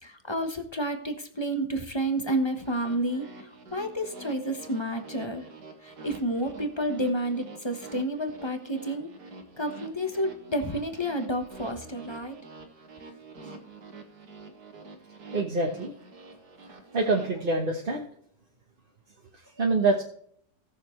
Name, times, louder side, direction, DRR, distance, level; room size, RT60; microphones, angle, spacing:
voice 1, 0.0-5.5 5.8-9.1 9.6-12.4, right 1 dB, 20° left, 6 dB, 1.1 m, -30 dB
sound 1, 2.5-17.3, right 3 dB, 75° right, 2.3 m, -47 dB
voice 2, 15.3-15.9 16.9-18.1 19.3-20.0, right 3 dB, 35° right, 1 dB, 1.2 m, -26 dB
18.0 x 6.7 x 3.2 m, 0.65 s
omnidirectional pair, 1.7 m